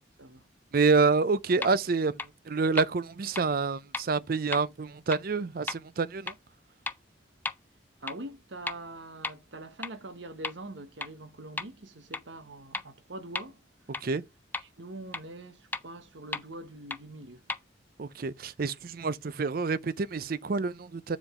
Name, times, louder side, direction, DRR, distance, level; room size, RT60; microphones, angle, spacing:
voice 1, 0.7-2.1 2.5-6.3 14.0-14.2 18.0-21.2, right 4 dB, 50° right, 0.5 m, -27 dB
sound 1, 1.6-1.7 2.2-2.3 2.8-2.9 3.3-3.4 3.9-4.0 4.5-4.6 5.1-5.2 5.7-5.8 6.3-6.4 6.9-7.0 7.4-7.5 8.1-8.2 8.7-8.8 9.2-9.3 9.8-9.9 10.4-10.5 11.0-11.1 11.6-11.7 12.1-12.2 12.7-12.8 13.3-13.4 13.9-14.0 14.5-14.6 15.1-15.2 15.7-15.8 16.3-16.4 16.9-17.0 17.5-17.6, left 3 dB, 10° left, 0.5 m, -33 dB
voice 2, 8.0-13.6 14.6-17.5, right 1 dB, 75° right, 1.1 m, -44 dB
8.4 x 5.1 x 3.7 m
head